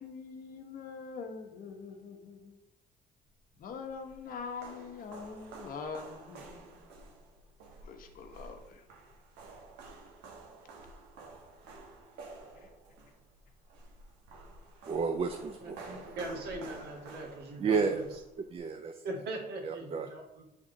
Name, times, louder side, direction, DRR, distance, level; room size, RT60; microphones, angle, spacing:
voice 1, 0.0-2.6 3.6-6.8 7.8-8.8 12.6-12.7, left 5 dB, 55° left, 4 dB, 1.0 m, -44 dB
sound 1, 3.6-18.6, right 3 dB, 90° right, 1.2 m, -51 dB
voice 2, 14.9-15.8 17.6-18.0 18.4-19.0 19.6-20.1, right 5 dB, 35° right, 7 dB, 0.5 m, -31 dB
voice 3, 15.6-18.1 19.0-20.4, right 2 dB, 70° right, 1 dB, 1.7 m, -41 dB
7.2 x 3.6 x 3.9 m, 0.93 s
cardioid pair, 110°, 17 cm